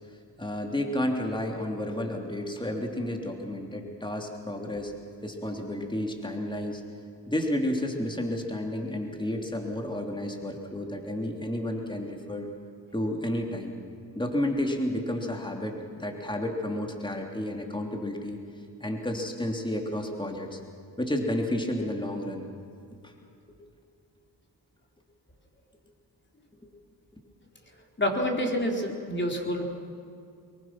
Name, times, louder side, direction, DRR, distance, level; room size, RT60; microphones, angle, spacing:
voice 1, 0.4-4.9 5.2-6.8 7.3-12.5 12.9-13.7 14.1-18.4 18.8-20.6 21.0-22.5 23.0-23.1 23.5-23.6 26.5-26.7, left 1 dB, 10° left, 2 dB, 3.1 m, -31 dB
voice 2, 28.0-29.6, equal, 25° left, 1 dB, 4.0 m, -27 dB
24.5 x 22.5 x 6.1 m, 2.5 s
cardioid pair, 70°, 41 cm